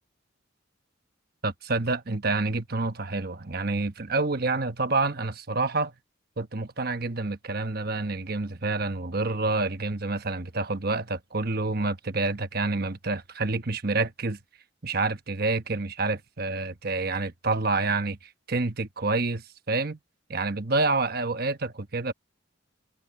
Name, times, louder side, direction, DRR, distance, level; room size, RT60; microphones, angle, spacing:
voice 1, 1.4-5.9 6.4-14.4 14.8-18.2 18.5-20.0 20.3-22.1, right 3 dB, 50° right, 1.1 m, -28 dB
head